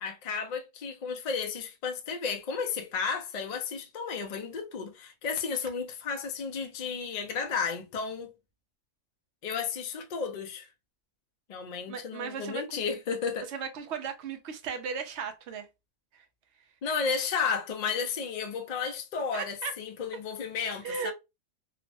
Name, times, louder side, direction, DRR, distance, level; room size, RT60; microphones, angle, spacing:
voice 1, 0.0-8.3 9.4-10.7 11.5-13.5 16.8-21.1, left 5 dB, 65° left, 0.4 m, -33 dB
voice 2, 11.9-12.8 13.5-15.7 16.1-16.2 19.3-19.7 20.8-21.1, right 6 dB, 65° right, 0.8 m, -36 dB
3.0 x 2.0 x 2.5 m
omnidirectional pair, 1.4 m